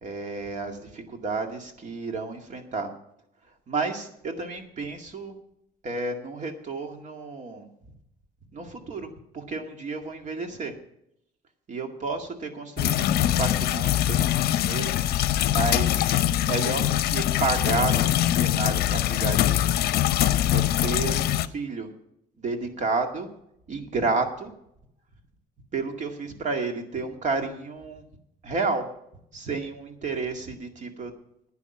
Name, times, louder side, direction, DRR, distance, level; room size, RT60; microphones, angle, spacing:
voice 1, 0.0-2.9 3.7-5.4 5.8-7.7 8.5-10.7 11.7-14.9 15.5-16.1 16.4-19.8 20.5-21.9 22.4-23.3 23.7-24.5 25.7-28.0 28.4-28.9 29.3-31.1, right 3 dB, 45° right, 4 dB, 2.1 m, -31 dB
sound 1, 12.8-21.5, left 12 dB, 70° left, 0.6 m, -23 dB
11.5 x 9.8 x 5.9 m, 0.78 s
cardioid pair, 110°, 17 cm